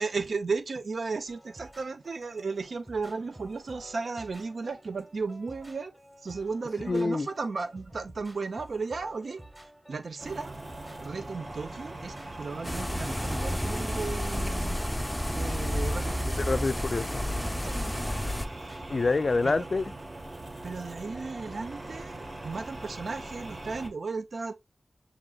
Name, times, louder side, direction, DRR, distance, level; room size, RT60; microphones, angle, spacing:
voice 1, 0.0-5.9 6.2-9.4 9.9-10.5 11.0-14.8 15.2-16.4 17.6-18.1 19.4-19.7 20.6-24.5, right 4 dB, 80° right, 0.5 m, -35 dB
sound 1, 1.3-19.3, right 1 dB, 20° right, 1.6 m, -52 dB
voice 2, 6.9-7.3 16.4-17.2 18.9-19.9, left 3 dB, 55° left, 0.3 m, -27 dB
sound 2, 10.2-23.9, right 2 dB, 40° right, 1.0 m, -41 dB
sound 3, 12.6-18.5, left 1 dB, 5° left, 0.5 m, -31 dB
7.3 x 2.9 x 2.3 m
wide cardioid pair, 65°, 0 cm